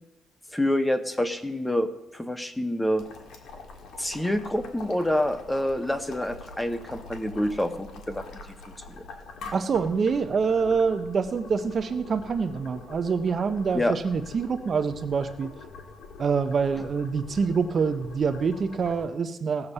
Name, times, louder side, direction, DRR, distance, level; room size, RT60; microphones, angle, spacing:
voice 1, 0.5-3.0 4.0-8.2 13.7-13.9, left 1 dB, 5° left, 10 dB, 0.7 m, -27 dB
Boiling, 3.0-19.0, left 4 dB, 65° left, 1.9 m, -44 dB
voice 2, 9.5-15.5 16.2-19.7, right 5 dB, 35° right, 10 dB, 0.6 m, -26 dB
17.0 x 7.2 x 6.7 m, 0.94 s
cardioid pair, 165°, 0 cm